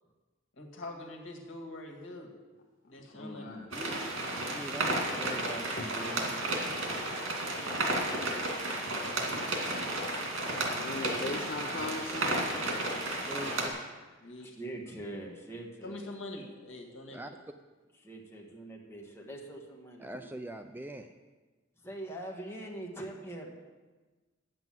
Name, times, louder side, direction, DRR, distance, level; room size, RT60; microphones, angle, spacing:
voice 1, 0.6-2.3 2.8-4.0 11.2-11.3 14.2-14.6 15.8-17.4, left 2 dB, 75° left, 1 dB, 2.0 m, -44 dB
voice 2, 3.0-3.8 5.8-5.9 10.2-12.5, left 2 dB, 50° left, 1 dB, 0.9 m, -40 dB
sound 1, 3.7-13.7, right 2 dB, 85° right, 2.2 m, -33 dB
voice 3, 4.4-6.9 13.2-13.7 17.1-17.3 20.0-21.1, right 1 dB, 10° right, 7 dB, 0.4 m, -43 dB
voice 4, 14.4-16.1 18.0-20.3 21.8-23.5, right 1 dB, 15° left, -1 dB, 1.7 m, -44 dB
9.4 x 7.6 x 7.5 m, 1.3 s
head